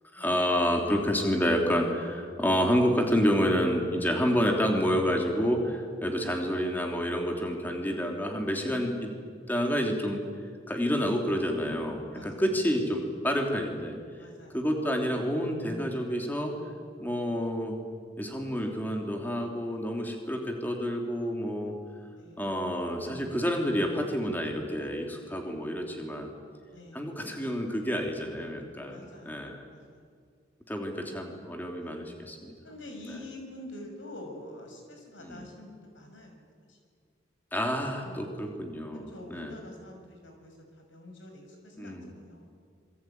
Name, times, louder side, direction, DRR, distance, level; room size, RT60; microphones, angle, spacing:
voice 1, 0.1-9.1 9.5-10.2 10.7-14.0 14.5-16.5 17.0-17.8 18.2-21.7 22.4-26.3 26.9-29.7 30.7-32.5 33.0-33.2 35.2-35.5 37.5-39.6 41.8-42.1, equal, 10° left, 2 dB, 3.1 m, -29 dB
voice 2, 12.0-12.3 14.2-14.6 22.2-22.4 26.7-27.0 28.8-29.4 29.7-30.0 31.7-32.0 32.6-36.4 36.7-36.8 38.0-38.5 38.9-42.5, left 1 dB, 85° left, 4 dB, 6.2 m, -47 dB
26.5 x 22.5 x 9.3 m, 2.1 s
head